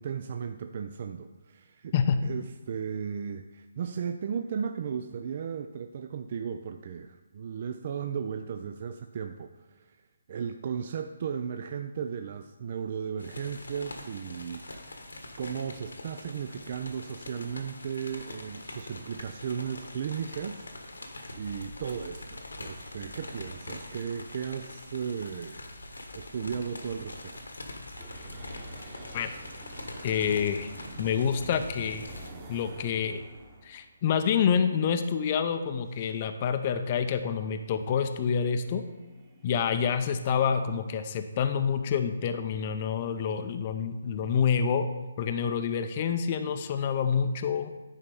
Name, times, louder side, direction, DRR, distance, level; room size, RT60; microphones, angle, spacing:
voice 1, 0.0-1.9 2.2-14.7 15.4-20.9 21.3-25.6 26.1-27.4, right 7 dB, 45° right, 7 dB, 0.4 m, -35 dB
sound 1, 13.2-32.3, left 2 dB, 85° left, 1.4 m, -43 dB
sound 2, 28.0-34.2 36.0-40.9, right 1 dB, 25° right, 1.4 m, -49 dB
voice 2, 30.0-30.7 31.0-32.1 32.5-33.2 33.6-38.8 39.4-44.9 45.2-47.7, left 7 dB, 35° left, 8 dB, 0.5 m, -27 dB
9.8 x 4.3 x 5.3 m, 1.2 s
figure-of-eight pair, 150°, 0 cm